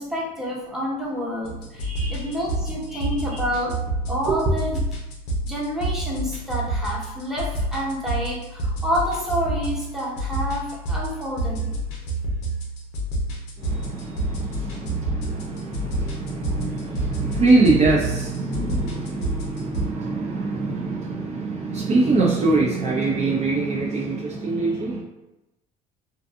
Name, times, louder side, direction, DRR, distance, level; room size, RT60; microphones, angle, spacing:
voice 1, 0.0-3.8 4.1-4.8 5.4-11.7, equal, ahead, -5 dB, 0.9 m, -28 dB
sound 1, 1.4-19.9, right 1 dB, 85° left, 0.6 m, -29 dB
voice 2, 1.8-2.4 2.9-3.1 4.3-4.4 13.6-25.0, right 3 dB, 35° right, -3 dB, 0.5 m, -24 dB
2.6 x 2.3 x 2.4 m, 0.96 s
hypercardioid pair, 70°, 19 cm